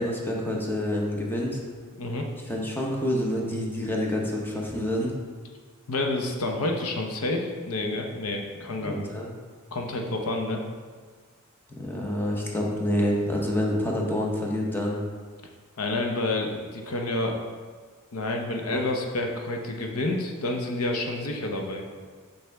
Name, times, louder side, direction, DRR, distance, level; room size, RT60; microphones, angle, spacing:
voice 1, 0.0-1.6 2.5-5.1 8.8-9.3 11.8-15.0 18.7-18.8, left 1 dB, 10° left, -2 dB, 0.9 m, -27 dB
voice 2, 5.9-9.0 9.7-10.6 15.8-17.4 18.1-21.8, left 2 dB, 75° left, 2 dB, 0.8 m, -29 dB
6.5 x 5.7 x 3.4 m, 1.5 s
head